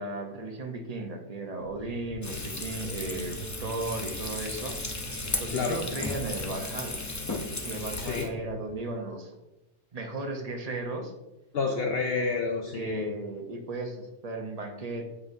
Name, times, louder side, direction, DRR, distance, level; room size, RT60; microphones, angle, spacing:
voice 1, 0.0-4.8 5.4-7.0 7.6-9.3 9.9-11.1 12.7-15.0, right 2 dB, 35° right, 3 dB, 0.8 m, -35 dB
sound 1, 1.6-8.7, right 2 dB, 5° left, 1.9 m, -44 dB
Frying (food), 2.2-8.3, left 2 dB, 25° left, 0.4 m, -35 dB
voice 2, 5.5-5.8 8.0-8.4 11.5-13.1, left 4 dB, 65° left, 3 dB, 0.7 m, -29 dB
7.8 x 5.4 x 2.6 m, 0.97 s
omnidirectional pair, 1.2 m